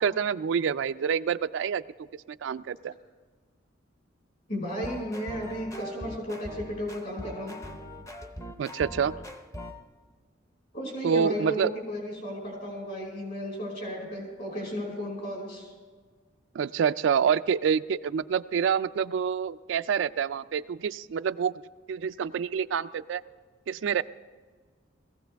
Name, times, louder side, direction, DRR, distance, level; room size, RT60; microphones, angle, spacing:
voice 1, 0.0-1.8 2.3-2.9 8.6-9.1 11.0-11.7 16.5-21.5 21.9-23.2 23.7-24.0, right 7 dB, 70° right, 14 dB, 0.3 m, -27 dB
voice 2, 4.5-7.5 10.7-15.7, equal, 50° left, -1 dB, 5.2 m, -34 dB
sound 1, 4.7-9.8, equal, 15° left, 0.7 m, -41 dB
19.0 x 15.5 x 3.4 m, 1.5 s
head